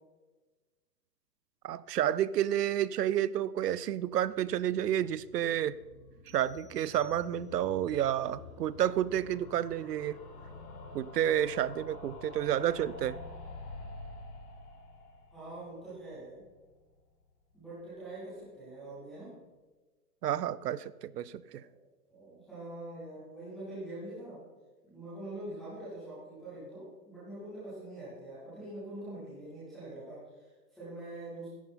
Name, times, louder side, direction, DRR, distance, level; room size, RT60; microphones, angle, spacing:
voice 1, 1.6-5.8 6.3-10.2 10.9-13.2 20.2-21.6, right 11 dB, 75° right, 19 dB, 0.7 m, -30 dB
sound 1, 4.0-17.0 17.3-17.4 17.6-17.7 17.9-18.0, left 2 dB, 70° left, 3.6 m, -49 dB
sound 2, 6.3-7.8, right 1 dB, 25° right, 1.7 m, -62 dB
voice 2, 15.3-16.4 17.5-19.3 21.4-21.7 22.1-24.4 24.8-31.5, right 1 dB, ahead, -13 dB, 0.4 m, -44 dB
13.5 x 10.5 x 4.2 m, 1.3 s
hypercardioid pair, 145°, 48 cm